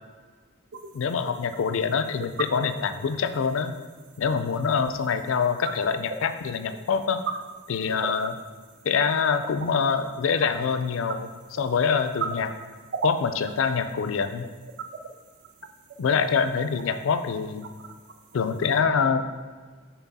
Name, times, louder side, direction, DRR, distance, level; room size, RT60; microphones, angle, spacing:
sound 1, 0.7-18.8, right 5 dB, 55° right, 0.4 m, -40 dB
voice 1, 0.9-3.7 4.2-7.2 7.7-8.4 8.8-12.5 13.0-14.5 16.0-17.6 18.3-19.2, left 6 dB, 75° left, 10 dB, 0.4 m, -25 dB
6.0 x 4.0 x 4.1 m, 1.5 s
head